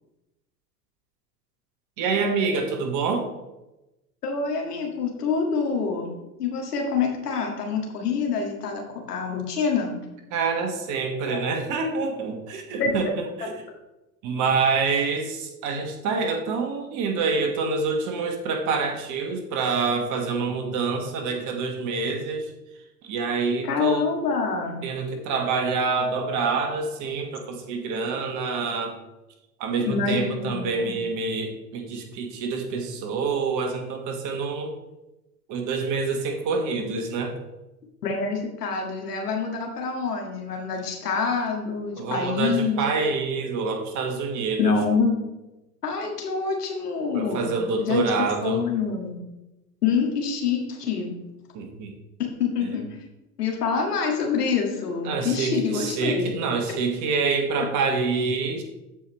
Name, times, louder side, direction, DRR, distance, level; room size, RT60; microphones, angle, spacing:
voice 1, 2.0-3.3 10.3-13.5 14.2-22.5 23.0-24.1 24.8-29.0 29.6-34.7 35.5-37.3 42.0-44.7 47.1-48.6 51.5-51.9 55.0-58.6, right 4 dB, 40° right, 4 dB, 1.5 m, -26 dB
voice 2, 4.2-6.1 6.4-10.0 11.3-11.4 12.8-12.9 23.6-24.8 29.9-30.9 38.0-42.8 44.6-45.2 45.8-47.5 47.8-49.1 49.8-51.1 52.2-52.8 53.4-56.3, left 5 dB, 70° left, 1 dB, 1.9 m, -26 dB
14.0 x 4.8 x 3.1 m, 0.99 s
figure-of-eight pair, 85°, 48 cm